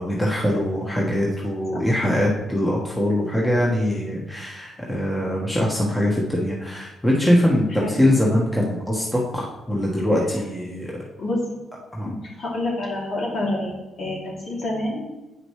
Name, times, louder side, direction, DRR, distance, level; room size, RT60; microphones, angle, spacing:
voice 1, 0.0-11.1 11.9-12.1, left 1 dB, 10° left, -4 dB, 1.3 m, -22 dB
voice 2, 12.4-15.0, left 1 dB, 50° left, -4 dB, 2.6 m, -27 dB
8.9 x 5.0 x 3.2 m, 1.0 s
cardioid pair, 90°, 0 cm